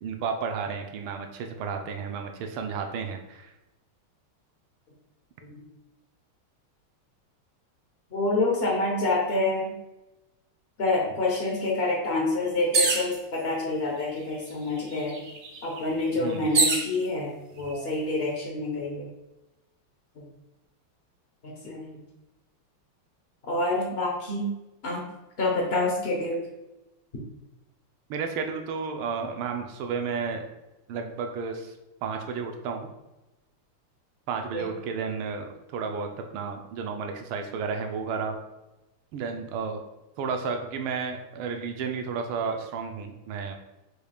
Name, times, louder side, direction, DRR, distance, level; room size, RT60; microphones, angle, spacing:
voice 1, 0.0-3.5 16.2-16.5 28.1-30.4 30.9-31.7 32.0-32.9 34.3-38.4 39.1-39.8 40.2-43.6, right 5 dB, 80° right, 4 dB, 1.4 m, -32 dB
voice 2, 8.1-9.7 10.8-15.2 15.6-17.3 17.5-19.1 20.2-20.3 21.4-22.0 23.4-24.5 24.8-25.0 25.4-26.4 34.5-34.7, left 2 dB, 75° left, -2 dB, 0.5 m, -27 dB
sound 1, 12.7-13.2 14.1-14.2 14.5-16.9 17.7-18.2, right 3 dB, 60° right, 0.9 m, -26 dB
6.2 x 2.4 x 3.4 m, 0.99 s
omnidirectional pair, 2.4 m